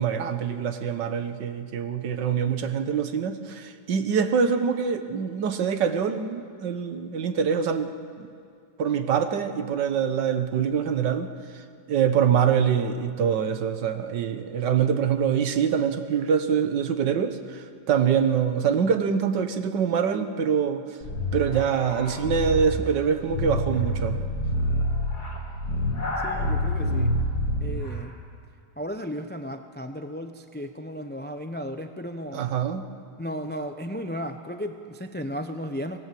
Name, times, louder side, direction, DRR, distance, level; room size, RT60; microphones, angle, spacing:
voice 1, 0.0-7.9 8.2-8.3 8.8-11.6 11.9-20.8 21.3-24.2 32.3-32.8, right 7 dB, 90° right, 9 dB, 1.8 m, -24 dB
sound 1, 21.0-27.9, equal, 65° left, 3.7 m, -27 dB
voice 2, 26.2-27.1 27.6-28.2 28.8-32.5 33.2-36.0, equal, 10° left, 7 dB, 0.4 m, -34 dB
24.5 x 19.0 x 7.7 m, 2.5 s
omnidirectional pair, 1.8 m